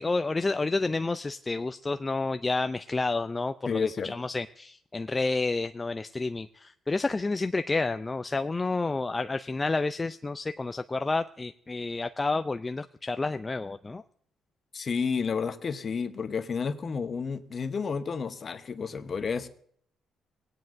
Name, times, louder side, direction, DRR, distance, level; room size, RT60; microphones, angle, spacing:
voice 1, 0.0-14.0, left 3 dB, 25° left, 10 dB, 0.4 m, -30 dB
voice 2, 3.7-4.1 14.7-19.5, left 5 dB, 45° left, 9 dB, 0.9 m, -31 dB
19.5 x 9.4 x 2.6 m, 0.62 s
cardioid pair, 75°, 0 cm